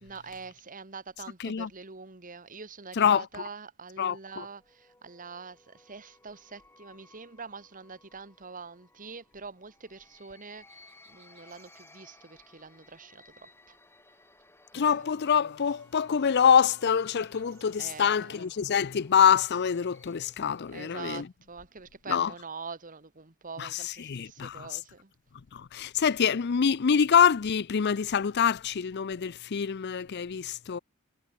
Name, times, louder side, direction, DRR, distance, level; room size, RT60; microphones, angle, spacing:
voice 1, 0.0-13.8 14.7-15.1 17.8-18.4 20.7-25.1, right 5 dB, 35° right, 1.6 m, -45 dB
voice 2, 3.0-3.3 4.0-4.5 14.7-21.2 22.1-22.3 23.6-24.7 25.5-30.8, left 7 dB, 50° left, 0.5 m, -25 dB
sound 1, 4.2-21.0, left 2 dB, 10° left, 4.6 m, -60 dB
sound 2, 10.7-12.1 16.7-18.0, right 14 dB, 65° right, 5.5 m, -63 dB
head